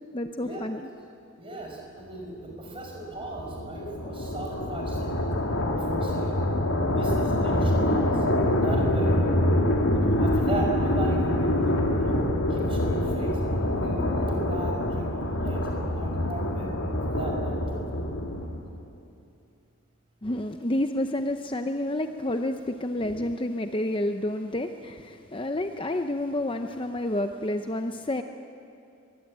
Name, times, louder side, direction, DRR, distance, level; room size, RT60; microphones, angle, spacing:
voice 1, 0.1-0.9 20.2-28.2, left 1 dB, 25° left, 7 dB, 0.6 m, -29 dB
voice 2, 1.4-5.3 5.7-6.4 6.9-8.3 8.6-9.2 9.9-13.4 13.7-16.7 17.1-17.8, right 1 dB, 25° right, 0 dB, 5.3 m, -36 dB
sound 1, 2.5-18.8, left 1 dB, 75° left, 2.8 m, -25 dB
24.0 x 21.0 x 8.8 m, 2.6 s
head